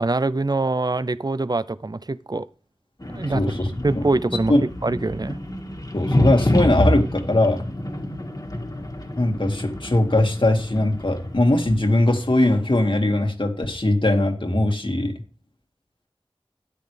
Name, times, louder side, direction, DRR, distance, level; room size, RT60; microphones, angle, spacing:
voice 1, 0.0-2.5 3.1-3.4 3.8-4.5 4.8-5.4, right 2 dB, 45° right, 0.5 m, -24 dB
sound 1, 3.0-11.8, left 1 dB, 40° left, 1.8 m, -27 dB
voice 2, 3.3-4.0 4.5-4.6 5.9-7.6 9.2-15.2, left 1 dB, 60° left, 2.0 m, -20 dB
13.0 x 9.5 x 3.4 m
wide cardioid pair, 45°, 10 cm